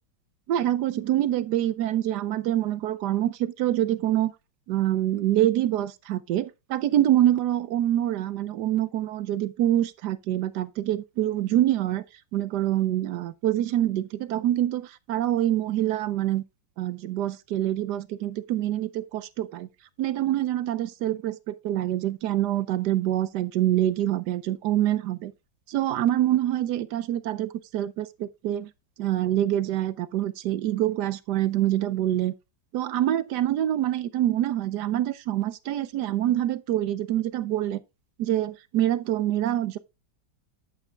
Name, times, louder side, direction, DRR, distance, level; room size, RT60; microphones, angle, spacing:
voice 1, 0.5-4.3 4.7-12.0 12.3-16.4 16.8-19.7 20.0-25.3 25.7-28.7 29.0-32.3 32.7-37.8 38.2-39.8, right 13 dB, 70° right, 1.1 m, -25 dB
10.5 x 8.2 x 2.4 m
omnidirectional pair, 2.0 m